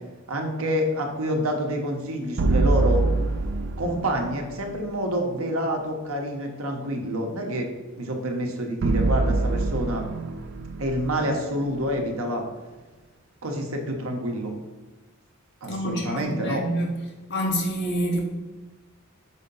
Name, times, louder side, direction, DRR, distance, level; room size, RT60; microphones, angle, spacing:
voice 1, 0.3-3.0 3.8-7.7 8.0-10.1 10.8-12.4 13.4-14.5 15.6-16.6, equal, 80° right, 2 dB, 1.0 m, -27 dB
sound 1, 2.4-4.6 8.8-12.0, right 3 dB, 55° right, 0.5 m, -25 dB
voice 2, 15.6-17.0 17.3-18.2, equal, 55° left, 0 dB, 1.1 m, -27 dB
6.2 x 2.8 x 5.4 m, 1.2 s
head